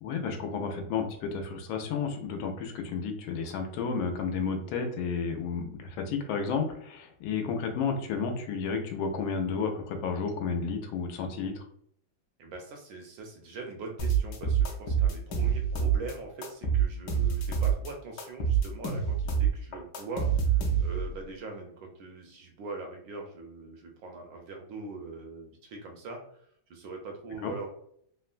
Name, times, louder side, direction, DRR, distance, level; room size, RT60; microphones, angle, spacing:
voice 1, 0.0-11.5 27.4-27.5, left 5 dB, 85° left, 5 dB, 1.4 m, -32 dB
voice 2, 12.4-26.2 26.7-27.7, right 3 dB, 75° right, 2 dB, 1.2 m, -42 dB
sound 1, 14.0-16.1 16.4-17.9 18.2-21.1, right 7 dB, 70° left, 1.0 m, -26 dB
3.6 x 2.1 x 2.4 m, 0.67 s
omnidirectional pair, 2.2 m